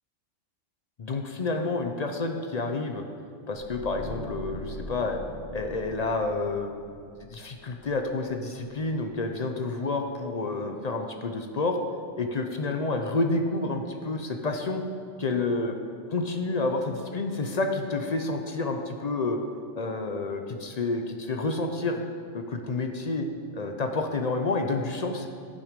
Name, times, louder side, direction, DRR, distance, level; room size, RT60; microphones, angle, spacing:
voice 1, 1.0-3.0 3.5-5.2 5.5-6.8 7.2-11.8 12.2-14.8 15.2-15.8 16.1-19.4 19.8-22.0 22.3-23.3 23.5-25.3, left 3 dB, 45° left, 5 dB, 0.5 m, -29 dB
sound 1, 3.5-8.6 8.9-9.2, left 1 dB, 55° right, 2.1 m, -42 dB
12.0 x 6.0 x 5.1 m, 2.3 s
omnidirectional pair, 1.4 m